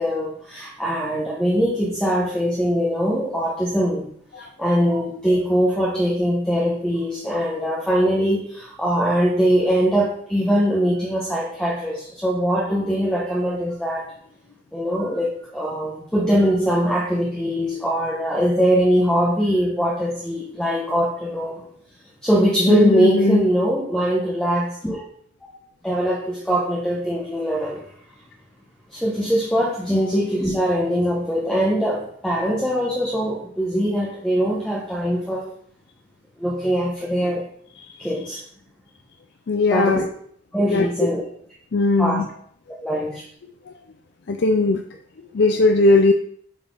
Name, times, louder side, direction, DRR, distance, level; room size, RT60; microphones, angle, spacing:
voice 1, 0.0-4.1 4.6-14.1 14.7-21.6 22.2-25.0 25.4-25.5 25.8-27.9 28.9-35.4 36.4-37.4 38.0-38.4 39.7-40.0 40.5-41.2 42.0-42.2 42.8-43.3, equal, 5° left, -5 dB, 1.1 m, -22 dB
voice 2, 22.7-23.5 29.9-30.0 39.5-40.0 40.7-40.9 41.7-42.3 44.3-44.8 45.3-46.1, left 3 dB, 65° left, 5 dB, 0.5 m, -18 dB
8.8 x 4.5 x 3.8 m, 0.64 s
head